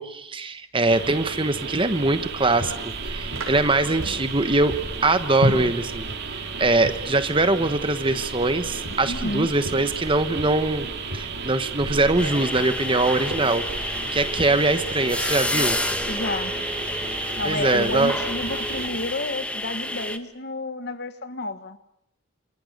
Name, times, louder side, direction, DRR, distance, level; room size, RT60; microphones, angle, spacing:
voice 1, 0.0-4.8 5.0-6.1 6.6-10.9 11.1-15.8 17.4-18.2, right 2 dB, 25° right, 10 dB, 1.2 m, -22 dB
sound 1, 0.9-18.9, right 5 dB, 50° right, 2.5 m, -34 dB
sound 2, 2.0-16.3, equal, 85° right, 7.3 m, -36 dB
voice 2, 9.0-9.5 16.1-16.5 17.4-21.8, left 2 dB, 50° left, 10 dB, 1.6 m, -30 dB
sound 3, 12.2-20.2, left 1 dB, 5° left, 1.3 m, -29 dB
28.5 x 28.0 x 6.7 m, 0.77 s
head